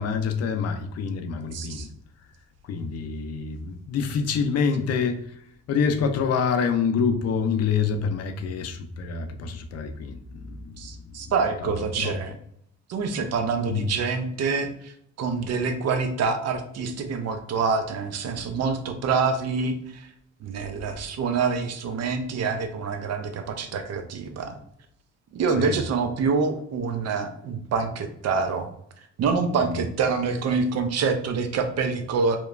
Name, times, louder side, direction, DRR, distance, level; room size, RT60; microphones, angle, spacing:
voice 1, 0.0-1.9 2.7-5.3 5.7-10.2 10.6-10.8 11.6-11.7 12.0-12.1 13.7-13.9 25.6-25.8 29.7-29.8, left 6 dB, 55° left, 7 dB, 0.4 m, -26 dB
voice 2, 1.5-1.9 10.8-12.4 12.9-20.1 20.4-24.6 25.3-28.7 29.2-32.4, right 5 dB, 60° right, 7 dB, 0.5 m, -26 dB
2.9 x 2.1 x 2.4 m, 0.69 s
cardioid pair, 90°, 30 cm